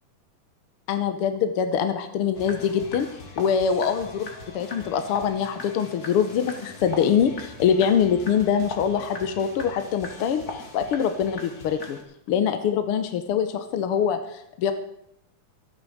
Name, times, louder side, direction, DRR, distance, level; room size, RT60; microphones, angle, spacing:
voice 1, 0.9-3.1 3.4-4.3 4.5-12.0 12.3-14.7, left 7 dB, 65° left, 9 dB, 1.5 m, -24 dB
sound 1, 2.3-12.0, left 3 dB, 35° left, 2.0 m, -40 dB
13.0 x 9.0 x 7.8 m, 0.76 s
omnidirectional pair, 3.6 m